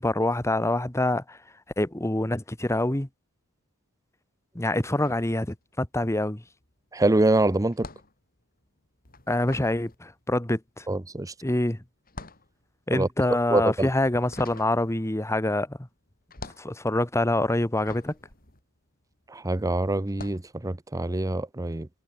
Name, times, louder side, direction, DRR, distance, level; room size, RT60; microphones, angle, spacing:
voice 1, 0.0-1.4 1.8-3.1 4.5-6.4 9.3-10.9 11.4-11.8 12.9-15.8 16.6-18.1, left 1 dB, 15° left, 1.2 m, -26 dB
sound 1, 4.8-6.0 6.3-19.5 20.0-20.5, left 3 dB, 40° left, 4.8 m, -47 dB
voice 2, 6.9-7.9 10.9-11.3 12.9-13.1 13.5-13.9 19.3-21.9, right 2 dB, 15° right, 0.7 m, -25 dB
head